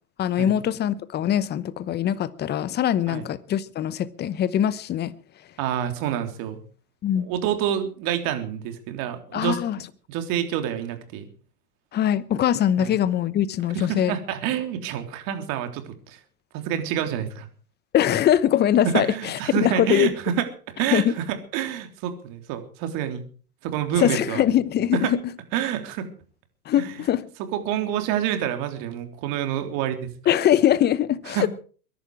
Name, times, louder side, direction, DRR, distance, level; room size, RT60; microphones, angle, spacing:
voice 1, 0.2-5.1 7.0-7.3 9.3-9.8 11.9-14.1 17.9-20.1 20.9-21.1 24.0-25.2 26.7-27.3 30.3-31.5, left 10 dB, 20° left, 0.9 m, -22 dB
voice 2, 5.6-6.6 7.1-11.3 12.8-13.0 13.7-16.2 16.5-17.5 18.9-23.2 23.6-24.4 24.9-25.1 25.5-26.1 26.8-27.0 27.5-30.1 31.3-31.5, right 10 dB, 45° right, 3.5 m, -28 dB
22.5 x 11.5 x 4.8 m
hypercardioid pair, 120°, 47 cm